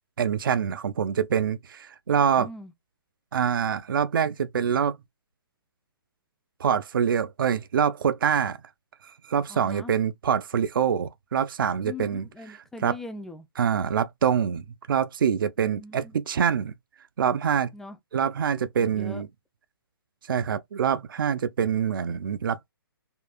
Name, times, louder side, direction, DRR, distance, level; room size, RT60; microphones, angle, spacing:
voice 1, 0.2-2.5 3.3-5.0 6.6-8.6 9.3-12.3 12.8-12.9 13.6-16.7 17.2-17.7 18.1-19.3 20.3-22.7, right 7 dB, 60° right, 0.4 m, -25 dB
voice 2, 2.4-2.7 9.5-9.9 11.8-13.5 15.6-16.1 17.7-18.0 18.8-19.2, left 2 dB, 5° left, 0.3 m, -41 dB
3.7 x 2.3 x 2.3 m
figure-of-eight pair, 130°, 13 cm